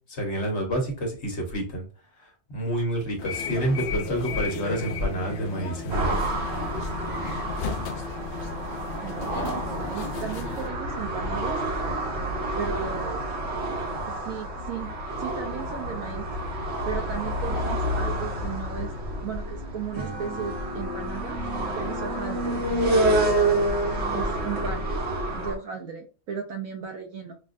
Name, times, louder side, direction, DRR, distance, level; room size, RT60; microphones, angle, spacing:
voice 1, 0.1-1.9 2.2-6.2, right 1 dB, 55° left, 1 dB, 1.3 m, -28 dB
sound 1, 3.2-10.7, left 5 dB, 80° left, 0.4 m, -35 dB
sound 2, 5.9-25.6, right 1 dB, 55° right, 1.1 m, -28 dB
voice 2, 9.0-11.6 12.6-13.2 14.1-14.9 15.2-16.3 16.9-18.9 19.2-21.4 21.7-22.6 24.1-24.8 25.3-27.3, right 7 dB, 75° right, 3 dB, 1.0 m, -35 dB
sound 3, 19.9-25.1, left 2 dB, 25° right, 0.8 m, -40 dB
5.6 x 2.4 x 2.5 m, 0.36 s
omnidirectional pair, 1.5 m